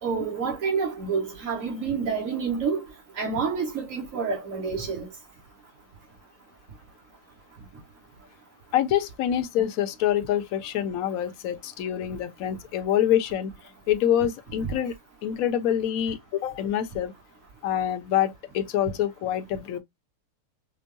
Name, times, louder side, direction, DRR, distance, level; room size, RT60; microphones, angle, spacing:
voice 1, 0.0-2.8 3.2-5.1, right 5 dB, 60° right, 1.8 m, -28 dB
voice 2, 8.7-13.5 13.9-14.9 15.2-17.1 17.6-19.8, left 10 dB, 70° left, 1.0 m, -26 dB
5.1 x 2.0 x 2.6 m
omnidirectional pair, 1.6 m